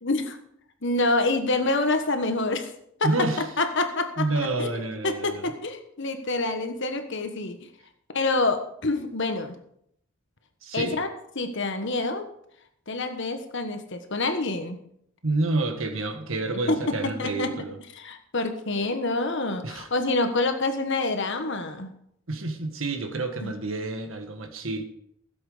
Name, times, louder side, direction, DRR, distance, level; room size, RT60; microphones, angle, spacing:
voice 1, 0.0-0.4 0.8-2.7 3.0-3.3 3.6-4.3 4.6-7.7 8.1-9.5 10.7-11.1 11.3-12.3 12.9-14.8 16.7-17.5 17.9-21.9 23.4-23.5, left 2 dB, 60° left, 7 dB, 1.4 m, -27 dB
voice 2, 3.0-3.4 4.2-5.5 10.6-11.0 15.2-17.8 19.6-19.9 22.3-24.8, right 2 dB, 65° right, 5 dB, 1.7 m, -28 dB
15.5 x 7.8 x 5.1 m, 0.71 s
head